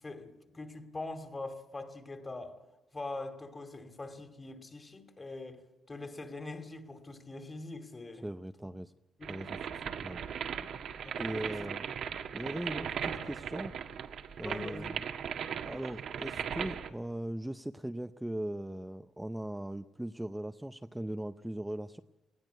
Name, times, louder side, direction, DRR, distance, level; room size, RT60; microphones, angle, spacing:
voice 1, 0.0-2.6 2.9-8.3 9.2-9.5 11.0-11.5 14.4-14.9, left 2 dB, 25° left, 2.5 m, -43 dB
voice 2, 8.2-8.9 9.3-10.2 11.2-11.9 12.3-13.8 14.4-15.0 15.6-22.0, right 1 dB, 5° right, 0.6 m, -39 dB
sound 1, 9.2-16.9, right 8 dB, 65° right, 1.5 m, -38 dB
20.0 x 16.0 x 9.4 m
cardioid pair, 90°, 0 cm